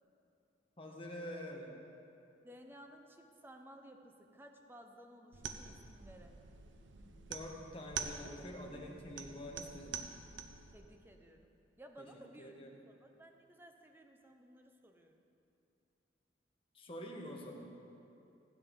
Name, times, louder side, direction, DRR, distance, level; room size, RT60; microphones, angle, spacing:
voice 1, 0.8-1.7 7.3-10.0 12.0-12.1 12.4-12.7 16.7-17.7, left 1 dB, 30° left, -1 dB, 1.4 m, -46 dB
voice 2, 2.4-6.3 10.7-11.5 11.8-15.2, equal, 10° right, 4 dB, 0.7 m, -57 dB
sound 1, 5.3-10.7, right 6 dB, 90° right, 0.7 m, -46 dB
16.0 x 9.0 x 3.8 m, 2.7 s
head